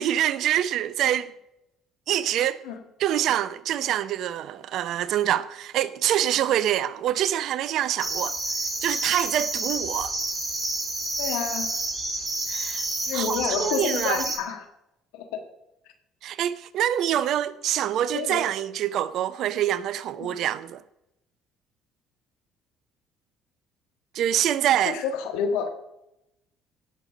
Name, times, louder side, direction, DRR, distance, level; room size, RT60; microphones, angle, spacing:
voice 1, 0.0-1.3 2.1-2.6 3.0-8.4 8.8-10.1 12.5-12.8 13.1-14.2 16.2-20.8 24.1-25.0, right 11 dB, 60° right, 0.6 m, -25 dB
sound 1, 8.0-14.4, right 2 dB, 25° right, 3.7 m, -29 dB
voice 2, 11.2-11.7 13.1-14.7 15.1-15.4 18.1-18.4 20.2-20.3 24.9-25.7, left 6 dB, 75° left, 1.7 m, -29 dB
17.0 x 6.8 x 5.1 m
hypercardioid pair, 60°, 0 cm